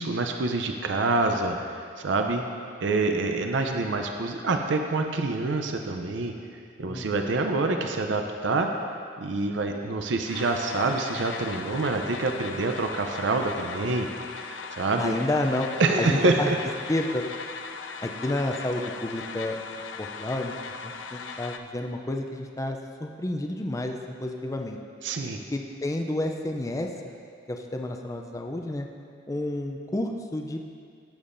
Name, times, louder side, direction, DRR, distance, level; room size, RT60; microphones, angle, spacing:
voice 1, 0.0-2.4 2.8-8.7 9.2-14.1 14.4-15.2 15.8-16.6 25.0-25.4, right 3 dB, 75° right, 4 dB, 0.5 m, -26 dB
voice 2, 6.9-7.3 15.0-15.7 16.0-16.5 16.9-17.3 18.0-20.5 20.8-24.8 25.5-26.9 27.5-28.9 29.3-30.6, left 1 dB, 15° left, 3 dB, 0.4 m, -30 dB
sound 1, 10.3-21.6, left 5 dB, 90° left, 0.5 m, -38 dB
15.0 x 7.1 x 2.6 m, 2.3 s
head